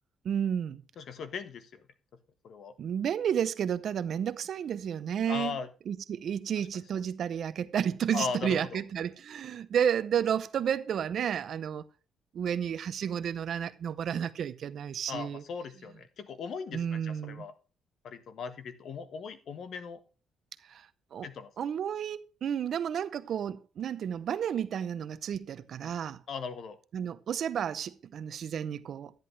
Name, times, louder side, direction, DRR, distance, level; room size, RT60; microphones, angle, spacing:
voice 1, 0.2-0.8 2.8-5.6 5.9-11.8 12.3-15.4 16.7-17.4 20.7-20.9 21.1-21.3 21.6-26.2 26.9-29.1, right 8 dB, 65° right, 0.7 m, -31 dB
voice 2, 1.0-1.8 2.4-2.7 5.3-5.7 6.6-6.7 8.1-8.8 15.1-17.5 18.0-20.0 21.2-21.5 26.3-26.8, left 5 dB, 65° left, 1.2 m, -38 dB
10.5 x 10.5 x 3.3 m
cardioid pair, 90°, 0 cm